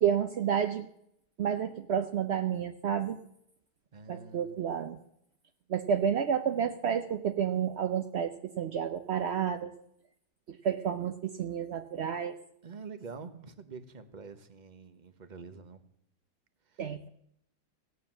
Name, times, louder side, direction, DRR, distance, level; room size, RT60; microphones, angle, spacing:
voice 1, 0.0-0.9 1.4-3.2 4.1-5.0 5.7-9.7 10.5-12.4 16.8-17.1, right 8 dB, 65° right, 7 dB, 0.6 m, -30 dB
voice 2, 3.9-4.5 12.6-15.8 16.7-16.9, right 4 dB, 30° right, 10 dB, 0.9 m, -46 dB
16.5 x 9.5 x 7.4 m, 0.75 s
omnidirectional pair, 1.9 m